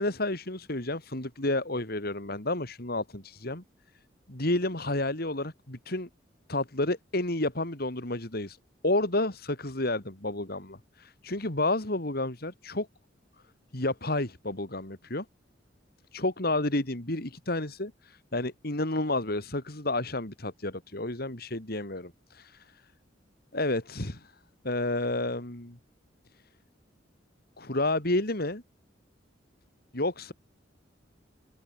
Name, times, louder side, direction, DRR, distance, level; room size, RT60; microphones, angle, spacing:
voice 1, 0.0-3.6 4.3-6.1 6.5-8.6 8.8-12.9 13.7-15.2 16.1-22.8 23.5-24.3 24.6-25.8 27.6-28.6 29.9-30.3, left 2 dB, 55° left, 3.3 m, -30 dB
head